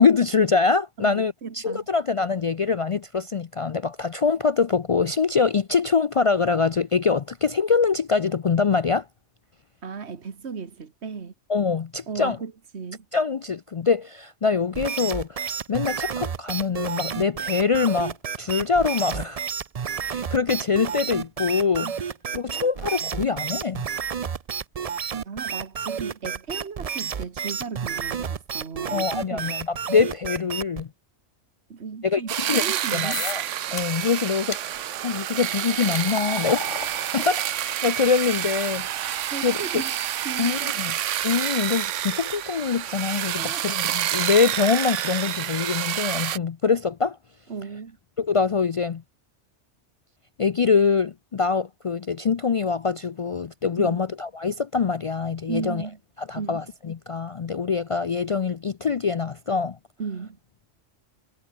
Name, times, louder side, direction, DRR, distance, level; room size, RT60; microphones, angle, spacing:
voice 1, 0.0-9.1 11.5-12.4 13.1-19.4 20.0-21.9 22.3-23.9 28.9-30.9 32.0-32.7 32.9-33.4 33.7-36.6 37.1-37.4 37.8-39.6 40.4-40.9 41.2-47.2 48.2-49.0 50.4-55.8 56.2-59.8, left 5 dB, 60° left, 0.3 m, -24 dB
voice 2, 1.0-1.9 9.8-11.3 12.1-13.1 21.8-21.9 22.5-22.7 25.3-29.6 31.7-33.2 37.2-37.3 39.0-39.9 40.2-40.8 43.4-43.7 47.5-48.0 53.8-54.0 55.5-56.0 56.4-56.7 60.0-60.4, right 5 dB, 65° right, 1.9 m, -35 dB
sound 1, 14.7-30.8, right 7 dB, 40° right, 0.6 m, -31 dB
sound 2, 32.3-46.4, right 11 dB, 85° right, 1.1 m, -28 dB
sound 3, 33.1-33.5 33.8-34.1 34.5-34.6 35.3-42.5, left 5 dB, 85° left, 2.2 m, -39 dB
omnidirectional pair, 1.2 m